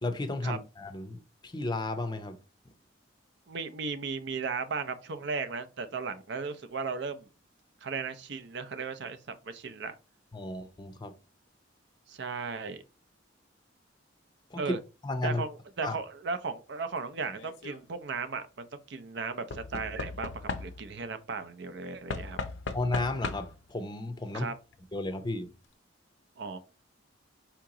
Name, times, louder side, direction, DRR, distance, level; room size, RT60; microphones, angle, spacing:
voice 1, 0.0-2.4 10.3-11.1 14.5-14.8 15.0-15.4 15.8-16.0 22.7-24.5 24.9-25.5, left 2 dB, 25° left, 0.5 m, -33 dB
voice 2, 3.5-7.3 7.8-9.9 12.1-12.8 14.6-14.8 15.2-20.3 20.6-22.4 24.3-24.5 26.4-26.6, right 4 dB, 65° right, 0.6 m, -36 dB
Knock / Wood, 17.3-17.8 19.5-21.0 22.1-23.7 24.7-24.8 25.0-25.1, left 3 dB, 75° left, 0.6 m, -37 dB
4.6 x 2.9 x 3.7 m
head